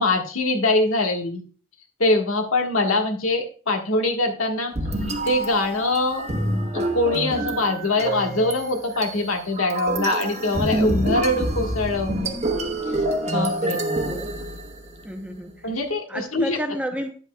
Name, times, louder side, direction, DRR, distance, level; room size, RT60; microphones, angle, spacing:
voice 1, 0.0-1.4 2.0-4.7 5.2-6.2 6.7-12.3 13.2-13.8 15.6-16.6, left 2 dB, 80° left, 3 dB, 1.4 m, -23 dB
sound 1, 4.7-15.1, right 1 dB, 30° right, 1.0 m, -27 dB
voice 2, 13.7-14.3 15.0-15.7 16.1-17.2, equal, 5° right, 5 dB, 0.7 m, -31 dB
9.7 x 8.1 x 2.3 m, 0.38 s
head